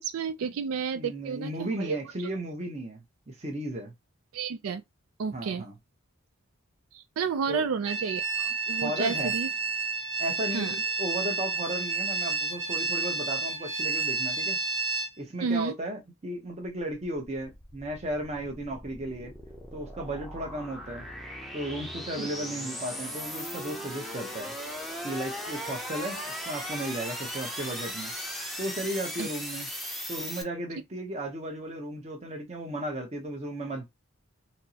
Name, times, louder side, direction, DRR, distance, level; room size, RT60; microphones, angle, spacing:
voice 1, 0.0-2.0 4.3-4.8 5.2-5.6 6.9-9.5 10.5-10.7 15.4-15.7 22.2-22.3 29.2-29.3, right 5 dB, 85° right, 0.4 m, -31 dB
voice 2, 0.9-3.9 5.3-5.7 7.5-7.6 8.8-9.3 10.2-14.6 15.2-19.3 19.7-21.1 21.5-24.5 25.0-28.1 28.6-29.7 30.1-33.9, right 1 dB, 30° right, 0.8 m, -35 dB
sound 1, 7.9-15.1, right 4 dB, 55° right, 1.0 m, -30 dB
sound 2, 16.8-30.4, equal, ahead, 0.6 m, -38 dB
4.2 x 2.0 x 2.7 m
head